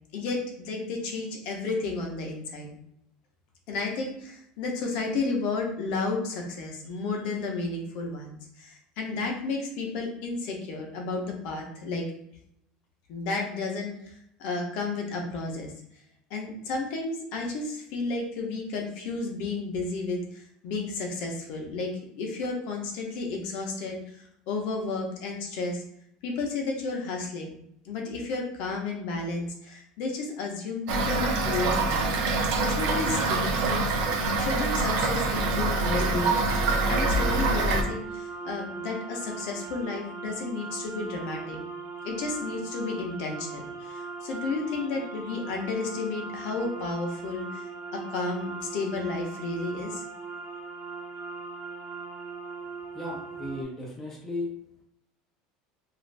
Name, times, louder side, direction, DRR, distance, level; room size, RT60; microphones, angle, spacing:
voice 1, 0.1-2.8 3.7-12.1 13.1-15.7 16.3-24.0 24.5-25.8 26.2-27.5 27.8-32.2 32.6-36.4 36.9-41.6 42.0-47.7 47.9-50.0, left 3 dB, 50° left, 1 dB, 0.6 m, -32 dB
Toilet flush / Fill (with liquid), 30.9-37.8, right 3 dB, 55° right, 0.4 m, -25 dB
sound 1, 35.3-53.6, right 4 dB, 85° right, 0.7 m, -39 dB
voice 2, 52.9-54.5, left 2 dB, 10° left, -4 dB, 0.5 m, -35 dB
2.5 x 2.4 x 3.2 m, 0.73 s
cardioid pair, 180°, 2 cm